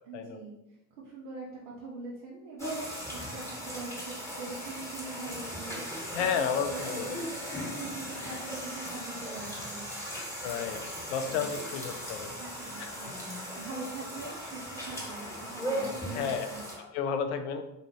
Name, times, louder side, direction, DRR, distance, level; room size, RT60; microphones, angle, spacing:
voice 1, 0.0-5.9 6.1-7.4 7.7-9.8 11.1-11.5 12.4-16.6, right 3 dB, 55° right, -5 dB, 0.8 m, -43 dB
sound 1, 2.6-16.8, equal, 5° left, 1.3 m, -38 dB
voice 2, 6.1-7.2 10.4-12.3 12.8-13.2 16.1-16.5 16.8-17.6, left 7 dB, 50° left, 7 dB, 0.5 m, -32 dB
4.4 x 2.4 x 3.0 m, 0.91 s
figure-of-eight pair, 70°, 48 cm